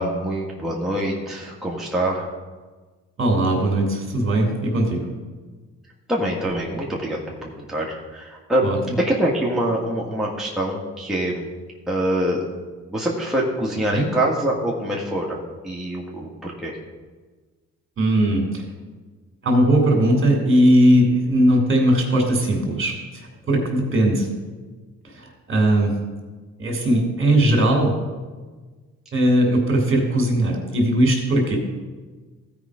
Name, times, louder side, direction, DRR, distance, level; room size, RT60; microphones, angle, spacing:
voice 1, 0.0-2.3 6.1-11.4 11.9-12.4 12.9-16.8, right 1 dB, ahead, -4 dB, 1.6 m, -25 dB
voice 2, 3.2-5.1 8.6-8.9 13.9-14.0 18.0-18.6 19.4-24.3 25.1-25.9 26.6-27.9 29.1-31.6, right 1 dB, 40° right, 1 dB, 2.8 m, -19 dB
15.0 x 5.0 x 4.9 m, 1.3 s
cardioid pair, 90°, 30 cm